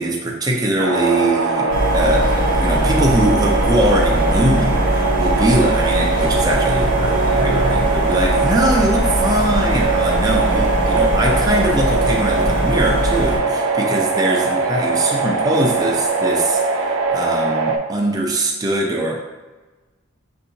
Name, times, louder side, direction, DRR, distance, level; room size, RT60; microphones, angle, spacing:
voice 1, 0.0-19.2, right 1 dB, 20° right, -1 dB, 0.5 m, -21 dB
sound 1, 0.8-17.8, right 4 dB, 85° right, 0.5 m, -21 dB
sound 2, 1.7-13.4, equal, 40° left, 0.7 m, -21 dB
6.0 x 2.7 x 2.7 m, 1.2 s
head